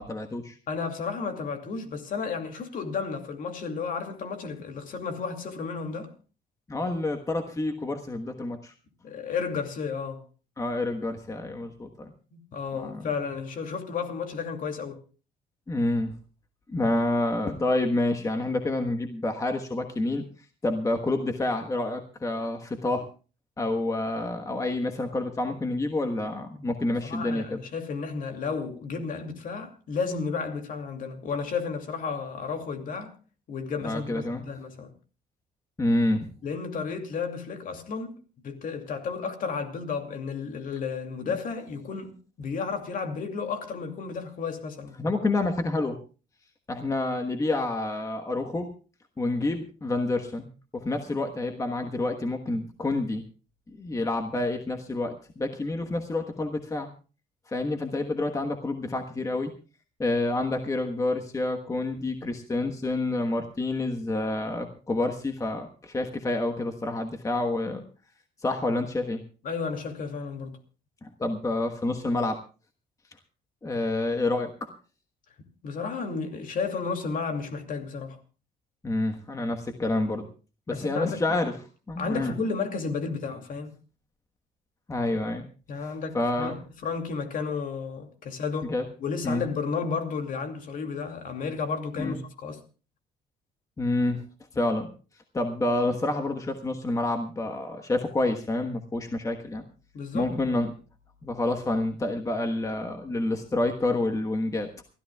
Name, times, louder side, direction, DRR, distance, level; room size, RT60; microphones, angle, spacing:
voice 1, 0.0-0.6 6.7-8.7 10.6-12.1 12.7-13.0 15.7-16.1 16.7-20.2 20.6-23.1 23.6-27.6 33.8-34.4 35.8-36.3 41.3-41.4 45.0-46.0 46.7-48.7 49.2-50.5 50.7-53.2 53.8-56.9 57.5-59.5 60.0-67.8 68.4-69.2 71.0-72.4 73.6-74.7 78.8-80.3 80.7-81.5 81.9-82.3 84.9-85.4 86.1-86.6 88.7-88.9 89.2-89.4 92.0-92.2 93.8-94.2 94.5-94.9 95.3-99.6 100.1-100.7 101.2-104.7, left 2 dB, 20° left, 1.3 m, -28 dB
voice 2, 0.7-6.1 9.0-10.2 12.3-15.0 26.9-33.1 33.5-34.9 36.4-38.1 38.4-45.0 69.4-70.6 75.6-78.2 80.7-81.4 82.0-83.7 85.7-88.7 89.0-92.6 99.9-100.3, left 5 dB, 55° left, 2.6 m, -32 dB
28.0 x 13.0 x 2.3 m
cardioid pair, 110°, 17 cm